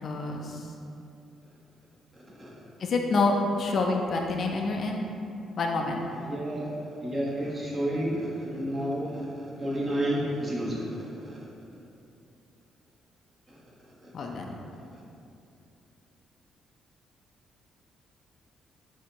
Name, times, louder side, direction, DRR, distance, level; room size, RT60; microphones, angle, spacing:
voice 1, 0.0-0.7 2.8-5.1 5.6-6.0 14.1-14.6, left 3 dB, 55° left, 1 dB, 0.4 m, -27 dB
voice 2, 2.1-2.5 6.1-11.4 13.5-14.1 14.9-15.0, right 1 dB, 30° right, -6 dB, 1.2 m, -32 dB
6.4 x 2.8 x 2.8 m, 2.6 s
cardioid pair, 90°, 0 cm